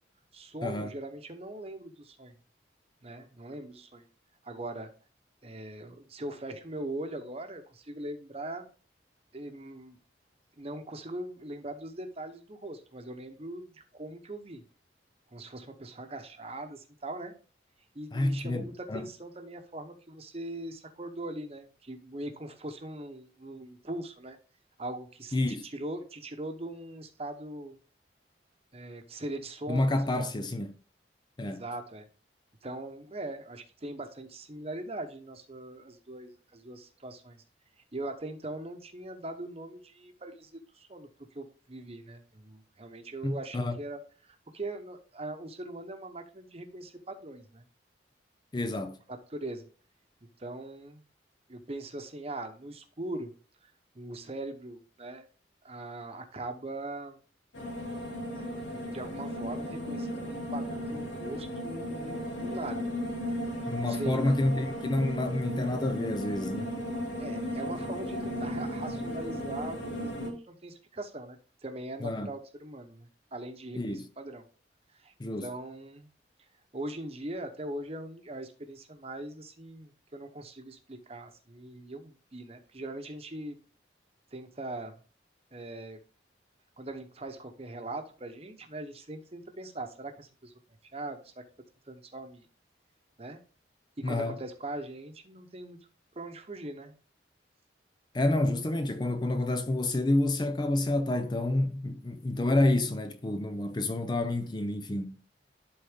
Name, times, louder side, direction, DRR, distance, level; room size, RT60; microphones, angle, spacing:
voice 1, 0.3-2.3 3.0-4.0 4.4-4.9 5.4-8.7 9.3-10.0 10.6-14.6 15.3-17.3 17.9-24.4 24.8-27.8 28.7-30.3 31.4-32.1 32.6-37.4 37.9-41.1 41.3-47.6 49.1-49.7 50.4-51.0 51.5-53.3 53.6-55.2 55.6-57.2 58.4-62.9 63.7-64.4 67.2-74.4 74.9-75.1 75.4-76.1 76.7-83.6 84.3-85.0 85.5-86.0 86.8-90.5 90.9-91.4 91.9-92.5 93.2-93.4 94.0-95.8 96.1-96.9, right 1 dB, 35° right, 1.0 m, -41 dB
voice 2, 18.1-19.1 25.3-25.7 29.7-30.7 31.4-31.6 43.2-43.8 48.5-49.0 63.7-66.7 72.0-72.3 73.7-74.1 75.2-75.5 94.0-94.4 98.1-105.2, left 2 dB, 25° left, 0.5 m, -29 dB
sound 1, 57.5-70.3, equal, 90° left, 1.8 m, -35 dB
11.5 x 4.0 x 3.6 m
head